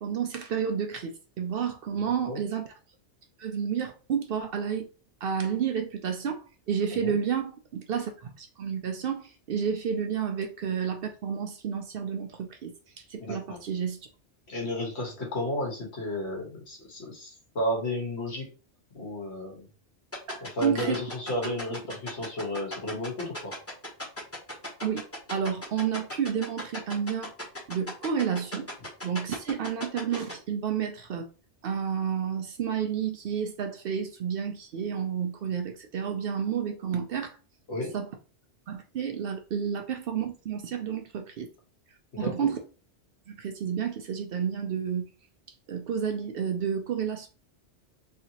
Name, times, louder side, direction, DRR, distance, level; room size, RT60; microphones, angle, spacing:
voice 1, 0.0-2.7 3.4-4.9 5.2-14.1 20.3-21.0 24.8-25.0 25.3-27.3 27.7-28.7 29.0-31.3 31.6-37.4 37.9-38.1 38.7-41.5 42.2-42.6 43.3-45.1 45.7-47.3, right 7 dB, 65° right, 0.7 m, -30 dB
voice 2, 1.9-2.4 7.0-7.1 13.2-13.6 14.5-18.5 18.9-19.7 20.4-23.5 37.7-37.9 42.1-42.3, left 1 dB, 70° left, 1.4 m, -33 dB
sound 1, 20.1-30.3, left 1 dB, 15° left, 0.8 m, -36 dB
3.2 x 2.8 x 2.8 m
omnidirectional pair, 1.2 m